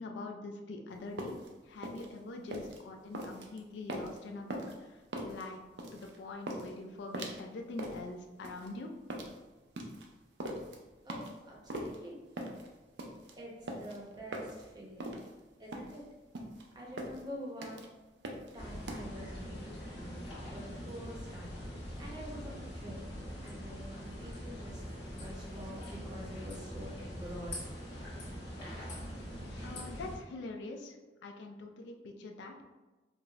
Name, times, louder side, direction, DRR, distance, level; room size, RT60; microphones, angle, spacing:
voice 1, 0.0-5.0 5.2-5.6 5.9-8.9 29.6-31.0 31.2-32.5, left 2 dB, 80° left, 2 dB, 0.4 m, -44 dB
sound 1, 1.0-19.0, right 1 dB, 75° right, 0.5 m, -42 dB
voice 2, 11.1-12.2 13.4-15.1 15.6-16.0 16.7-17.9 18.5-23.2 23.4-24.8 25.1-27.6, equal, 25° right, -3 dB, 0.7 m, -47 dB
sound 2, 18.6-30.2, equal, 60° left, 1.0 m, -43 dB
4.5 x 2.0 x 2.3 m, 1.2 s
head